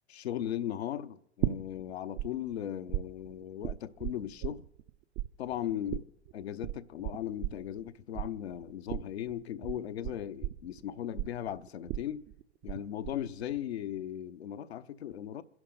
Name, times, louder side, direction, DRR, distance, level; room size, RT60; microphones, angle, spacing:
voice 1, 0.1-4.6 5.4-6.0 6.3-12.3 12.6-15.4, left 11 dB, 65° left, 0.9 m, -37 dB
sound 1, 1.4-2.3 2.5-4.9 5.2-12.8 13.0-13.6, right 15 dB, 45° right, 0.8 m, -36 dB
28.0 x 11.0 x 3.9 m
figure-of-eight pair, 90°, 34 cm